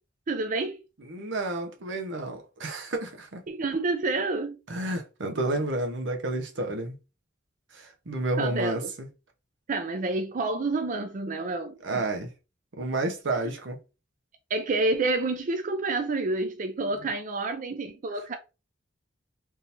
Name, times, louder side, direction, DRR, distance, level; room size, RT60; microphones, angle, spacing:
voice 1, 0.3-0.8 3.5-4.6 8.4-8.9 9.7-12.1 14.5-18.4, right 3 dB, 45° right, 0.4 m, -29 dB
voice 2, 1.0-3.4 4.7-7.0 7.7-9.1 11.8-12.3 12.8-13.8, right 2 dB, 90° right, 0.8 m, -30 dB
3.7 x 2.8 x 2.6 m
head